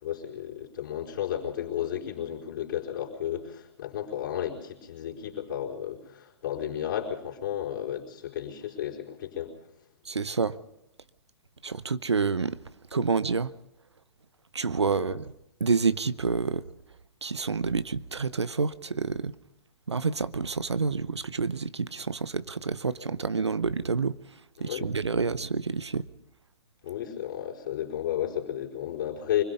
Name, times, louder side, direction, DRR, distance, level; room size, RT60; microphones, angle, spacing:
voice 1, 0.0-9.5 15.0-15.2 24.6-24.9 26.8-29.4, left 10 dB, 50° left, 4.5 m, -33 dB
voice 2, 10.1-10.6 11.6-12.6 12.9-13.5 14.5-15.2 15.6-16.7 17.2-19.3 19.9-24.1 24.6-26.1, right 4 dB, 80° right, 0.8 m, -28 dB
25.5 x 20.5 x 5.5 m
figure-of-eight pair, 120°, 14 cm